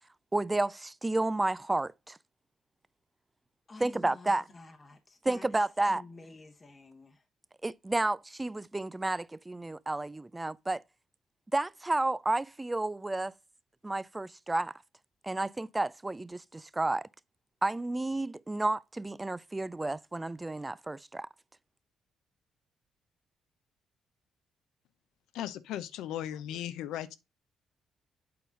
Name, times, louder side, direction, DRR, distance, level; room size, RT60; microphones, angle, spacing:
voice 1, 0.3-2.2 3.8-4.4 5.2-6.0 7.6-10.8 11.5-13.3 13.8-14.7 15.2-17.1 17.6-21.3, right 2 dB, 15° right, 0.4 m, -31 dB
voice 2, 3.7-7.2, left 3 dB, 30° left, 1.0 m, -50 dB
voice 3, 25.3-27.2, left 11 dB, 90° left, 0.7 m, -37 dB
8.5 x 4.0 x 4.0 m
cardioid pair, 90°, 0 cm